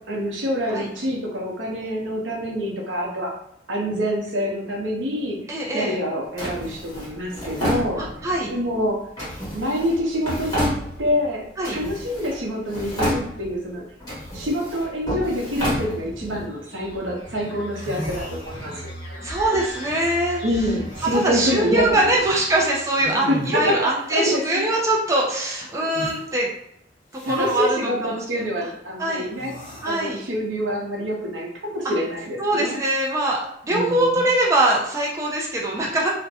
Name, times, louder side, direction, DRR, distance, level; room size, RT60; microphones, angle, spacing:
voice 1, 0.1-3.3 3.7-5.4 5.7-8.0 8.5-9.0 9.5-11.4 11.7-13.8 14.3-18.9 20.4-22.0 23.3-23.8 24.1-24.6 27.2-29.5 29.9-32.8 33.7-34.2, equal, 85° right, -2 dB, 0.7 m, -26 dB
voice 2, 5.5-6.0 8.0-8.5 11.6-11.8 19.2-20.4 21.1-26.5 27.3-28.7 29.0-29.3 29.8-30.2 32.4-36.1, right 1 dB, 15° right, -2 dB, 0.3 m, -23 dB
Drawer open or close, 6.4-8.4 9.2-11.3 11.6-12.4 12.7-13.6 14.0-16.4, equal, 20° left, 1.2 m, -29 dB
sound 1, 16.5-23.2, equal, 75° left, 0.9 m, -38 dB
sound 2, 17.4-17.5 17.7-19.0 20.8-21.4 23.0-23.8 25.9-26.2 27.1-27.7 29.3-30.1, left 1 dB, 45° left, 0.7 m, -36 dB
2.5 x 2.1 x 2.7 m, 0.74 s
head